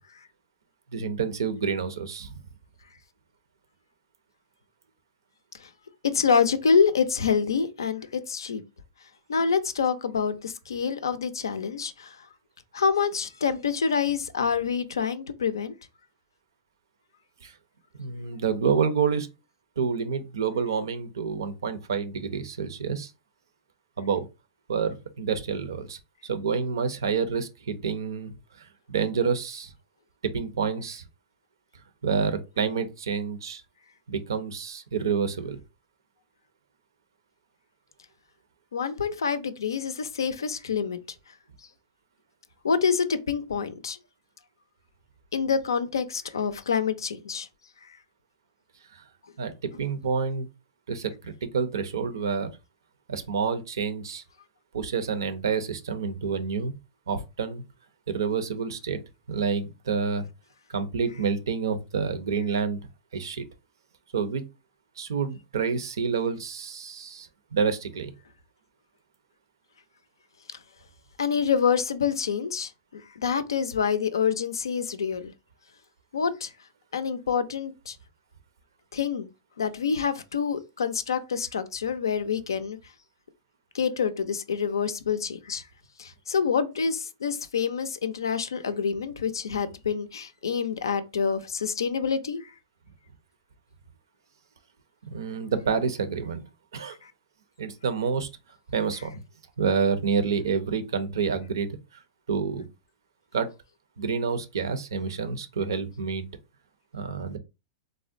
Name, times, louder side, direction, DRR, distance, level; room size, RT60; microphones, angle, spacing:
voice 1, 0.9-2.4 17.4-17.5 18.0-19.3 19.8-23.1 24.0-24.3 24.7-28.3 28.6-29.7 30.2-31.0 32.0-33.6 34.1-35.6 48.9-49.0 49.4-50.5 50.9-52.5 53.1-54.2 54.7-56.7 57.1-57.6 58.1-59.0 59.3-60.3 60.7-62.8 63.1-63.4 64.1-64.4 65.0-68.1 95.1-96.4 96.7-97.0 97.6-98.3 98.7-99.1 99.6-101.7 102.3-102.7 103.3-103.5 104.0-106.2 106.9-107.4, right 6 dB, 85° right, 0.5 m, -28 dB
voice 2, 6.1-8.6 9.3-12.2 12.7-15.7 38.7-41.0 42.6-44.0 45.3-47.5 71.2-75.3 76.1-76.5 76.9-77.9 78.9-79.3 79.6-82.8 83.7-85.6 86.0-92.4 97.0-97.1, left 6 dB, 90° left, 0.4 m, -26 dB
3.5 x 2.1 x 2.5 m
hypercardioid pair, 110°, 2 cm